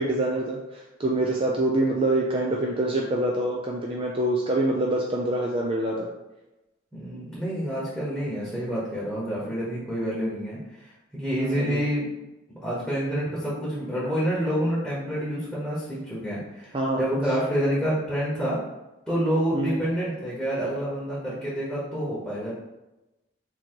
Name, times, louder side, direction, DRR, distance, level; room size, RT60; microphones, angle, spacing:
voice 1, 0.0-6.1 11.4-11.9 16.7-17.0 19.5-19.8, right 1 dB, 25° right, -2 dB, 0.4 m, -25 dB
voice 2, 6.9-12.1 12.5-18.6 19.1-22.5, equal, 5° left, -8 dB, 1.1 m, -28 dB
3.8 x 2.9 x 4.5 m, 0.99 s
head